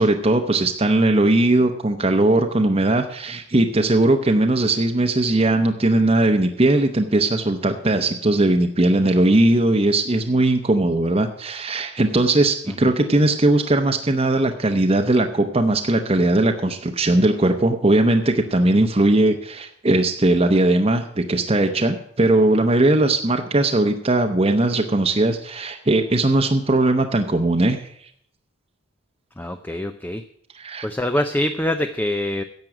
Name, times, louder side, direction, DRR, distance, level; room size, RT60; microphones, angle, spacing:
voice 1, 0.0-27.8 30.5-30.9, right 2 dB, 30° right, 4 dB, 0.8 m, -19 dB
voice 2, 29.4-30.2 30.8-32.4, left 1 dB, 10° left, 8 dB, 0.5 m, -24 dB
11.0 x 7.6 x 8.8 m, 0.67 s
head